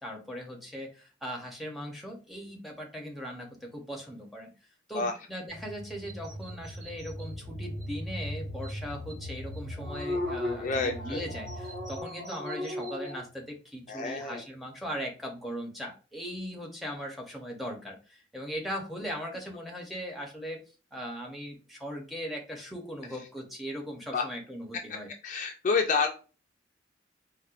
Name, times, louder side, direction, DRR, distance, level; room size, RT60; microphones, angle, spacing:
voice 1, 0.0-4.5 4.9-20.6 20.9-25.1, equal, ahead, 0 dB, 0.6 m, -39 dB
sound 1, 5.5-12.0, equal, 85° right, 0.9 m, -40 dB
sound 2, 6.0-7.3 7.8-7.9 8.2-8.3 8.6-8.7 9.1-9.2 9.5-13.2, left 1 dB, 60° right, 1.3 m, -37 dB
voice 2, 10.6-11.3 13.9-14.4 24.1-24.2 25.2-26.1, left 4 dB, 40° left, 4 dB, 0.3 m, -28 dB
4.2 x 2.1 x 2.4 m, 0.35 s
head